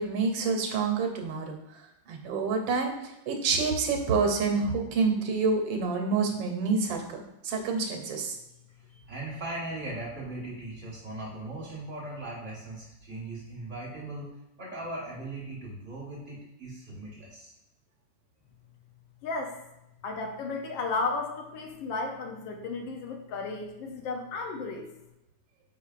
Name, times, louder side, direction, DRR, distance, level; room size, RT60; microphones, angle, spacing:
voice 1, 0.0-1.8 2.1-8.4, right 4 dB, 85° right, 3 dB, 1.5 m, -28 dB
voice 2, 8.8-14.3 14.6-17.5, right 2 dB, 40° right, -6 dB, 1.5 m, -39 dB
voice 3, 19.2-19.6 20.0-24.9, left 3 dB, 90° left, 2 dB, 1.4 m, -33 dB
4.9 x 4.3 x 2.4 m, 0.89 s
omnidirectional pair, 2.0 m